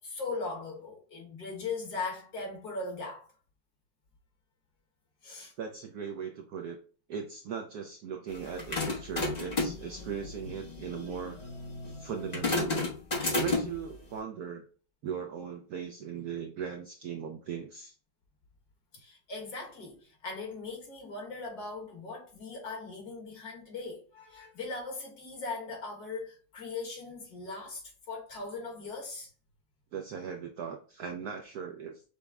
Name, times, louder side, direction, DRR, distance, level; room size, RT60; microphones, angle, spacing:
voice 1, 0.0-3.3 5.2-5.5 18.9-29.3, left 3 dB, 55° left, 1.7 m, -39 dB
voice 2, 5.6-6.8 7.1-11.4 11.9-13.0 13.3-14.7 15.0-17.9 29.9-32.0, right 7 dB, 75° right, 0.9 m, -38 dB
sound 1, 8.3-13.9, left 2 dB, 35° left, 0.6 m, -32 dB
5.9 x 2.1 x 3.5 m
omnidirectional pair, 2.1 m